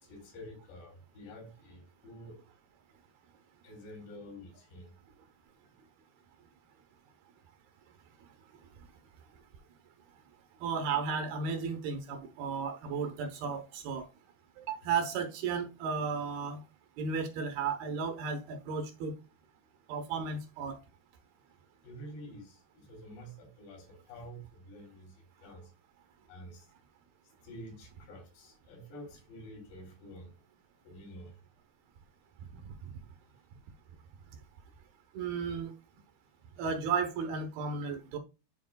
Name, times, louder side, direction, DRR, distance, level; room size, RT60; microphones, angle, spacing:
voice 1, 0.0-2.4 3.6-4.9 21.8-25.7 26.3-26.7 27.4-30.4 30.8-31.4, equal, 80° left, 5.0 m, -49 dB
voice 2, 10.6-14.0 14.6-16.6 17.0-19.1 19.9-20.8 32.8-32.9 35.1-35.7 36.6-38.2, right 5 dB, 75° right, 2.7 m, -34 dB
12.0 x 4.4 x 2.3 m
omnidirectional pair, 4.8 m